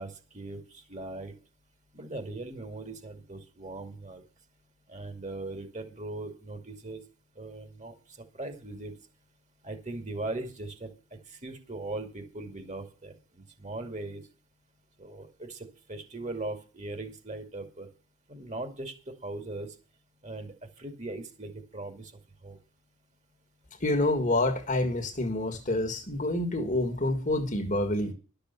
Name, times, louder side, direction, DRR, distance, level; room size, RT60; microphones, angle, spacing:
voice 1, 0.0-1.3 1.9-4.2 4.9-7.0 7.4-8.9 9.6-14.2 15.0-17.9 18.3-18.9 19.2-19.8 20.2-22.1 22.4-22.6, right 2 dB, 35° right, 6 dB, 2.3 m, -39 dB
voice 2, 23.8-28.1, left 1 dB, 35° left, 7 dB, 1.7 m, -27 dB
12.0 x 7.0 x 6.9 m, 0.35 s
head